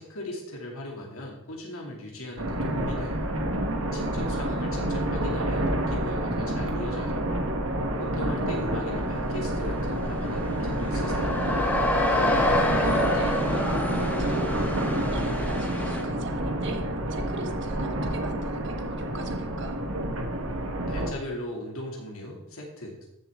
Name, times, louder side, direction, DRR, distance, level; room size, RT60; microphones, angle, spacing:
voice 1, 0.0-3.4 3.9-7.4 8.0-11.4 20.9-23.1, left 1 dB, 90° left, 0 dB, 2.6 m, -38 dB
sound 1, 2.4-21.1, right 1 dB, 80° right, 1.5 m, -28 dB
voice 2, 3.6-4.7 12.2-19.8, right 2 dB, 55° right, 5 dB, 1.2 m, -39 dB
sound 2, 9.5-9.6 9.8-16.0, left 1 dB, 5° left, 1.1 m, -27 dB
14.0 x 7.0 x 3.7 m, 0.87 s
head